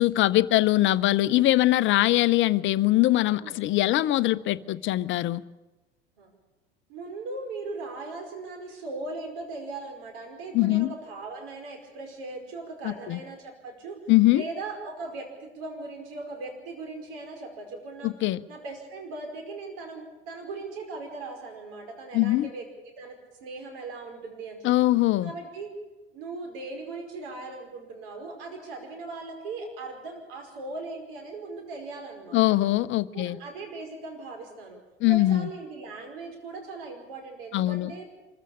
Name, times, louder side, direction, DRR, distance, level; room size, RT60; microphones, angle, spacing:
voice 1, 0.0-5.4 10.5-10.9 12.8-13.2 14.1-14.4 18.0-18.4 22.1-22.5 24.6-25.3 32.3-33.4 35.0-35.5 37.5-37.9, left 16 dB, 40° left, 16 dB, 0.7 m, -22 dB
voice 2, 6.9-14.0 14.3-18.1 18.5-24.7 25.2-25.7 26.1-32.6 33.1-34.8 35.1-38.3, right 3 dB, 60° right, 3 dB, 5.2 m, -39 dB
24.5 x 15.0 x 8.6 m, 1.1 s
figure-of-eight pair, 75°, 32 cm